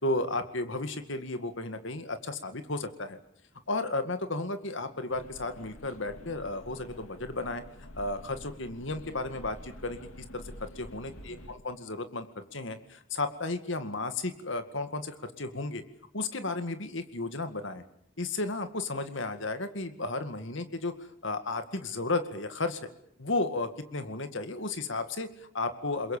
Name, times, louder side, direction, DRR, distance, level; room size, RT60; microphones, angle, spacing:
voice 1, 0.0-3.2 3.7-7.6 7.9-10.4 10.8-15.8 16.1-17.8 18.2-22.8 23.2-26.2, left 2 dB, 60° left, 9 dB, 2.1 m, -33 dB
sound 1, 5.1-11.5, left 1 dB, 85° left, 2.6 m, -48 dB
29.0 x 22.5 x 7.3 m, 0.65 s
head